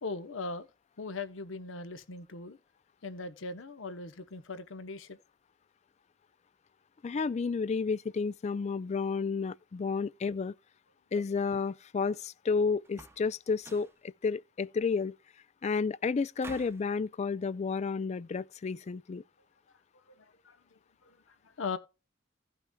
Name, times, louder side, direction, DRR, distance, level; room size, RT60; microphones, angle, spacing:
voice 1, 0.0-0.7 1.0-2.6 3.0-5.2 20.1-20.6 21.0-21.2 21.6-21.8, left 3 dB, 85° left, 0.9 m, -39 dB
voice 2, 7.0-10.5 11.1-15.2 15.6-19.2, left 5 dB, 35° left, 0.3 m, -31 dB
sound 1, 12.8-13.3 13.6-14.0 16.4-16.9, right 2 dB, 15° right, 0.7 m, -48 dB
16.5 x 5.8 x 2.2 m
head